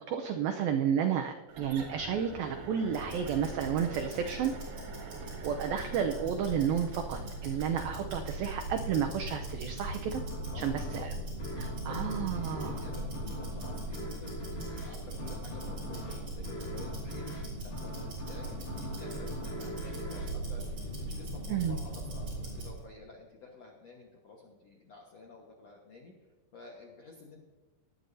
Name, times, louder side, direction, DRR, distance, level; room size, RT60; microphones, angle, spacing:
voice 1, 0.1-4.5 5.4-10.2 10.5-11.1 11.6-12.9 21.5-21.8, right 8 dB, 90° right, 5 dB, 2.1 m, -31 dB
sound 1, 1.5-7.9, right 4 dB, 70° right, 3.6 m, -45 dB
Tick-tock, 2.9-22.8, right 1 dB, 35° right, 6.0 m, -39 dB
sound 2, 10.1-21.4, left 1 dB, 45° left, 3.1 m, -44 dB
voice 2, 10.5-11.1 11.7-26.1 26.5-27.4, left 3 dB, 75° left, -1 dB, 1.5 m, -51 dB
19.5 x 11.5 x 2.7 m, 1.2 s
omnidirectional pair, 5.1 m